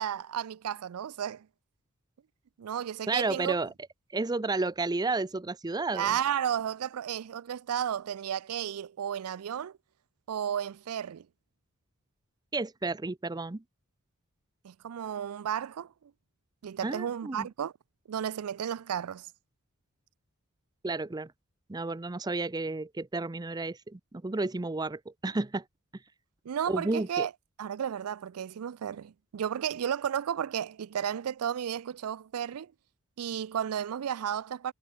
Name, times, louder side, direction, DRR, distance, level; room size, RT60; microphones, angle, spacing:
voice 1, 0.0-1.5 2.6-3.5 5.9-9.7 10.3-11.3 14.6-15.9 16.6-17.7 18.1-19.3 26.5-27.3 27.6-32.7 33.2-34.7, right 9 dB, 80° right, 0.4 m, -33 dB
voice 2, 3.1-3.7 4.1-6.2 12.5-13.6 16.8-17.5 20.8-21.3 21.7-25.6 26.7-27.3, right 3 dB, 20° right, 0.5 m, -32 dB
head